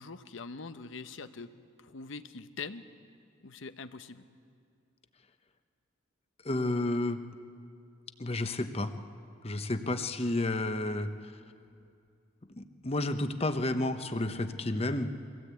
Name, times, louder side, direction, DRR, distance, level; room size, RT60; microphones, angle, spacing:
voice 1, 0.0-1.5 1.8-2.8 3.4-4.2, left 4 dB, 70° left, 10 dB, 0.9 m, -43 dB
voice 2, 6.4-7.2 8.2-8.9 9.4-11.3 12.5-15.1, left 2 dB, 30° left, 9 dB, 1.0 m, -31 dB
23.0 x 16.5 x 8.4 m, 2.4 s
head